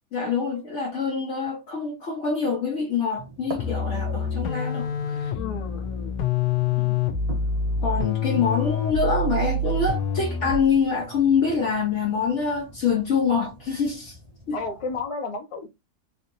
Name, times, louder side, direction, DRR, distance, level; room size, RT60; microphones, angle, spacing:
voice 1, 0.1-5.3 6.8-7.0 7.8-14.2 14.5-14.6, left 5 dB, 55° left, 0.9 m, -25 dB
sound 1, 3.1-15.0, right 3 dB, 45° right, 1.1 m, -43 dB
sound 2, 3.6-10.7, left 4 dB, 90° left, 1.2 m, -26 dB
voice 2, 5.3-6.2 14.5-15.7, left 4 dB, 25° left, 0.8 m, -32 dB
3.7 x 2.8 x 2.6 m
omnidirectional pair, 1.7 m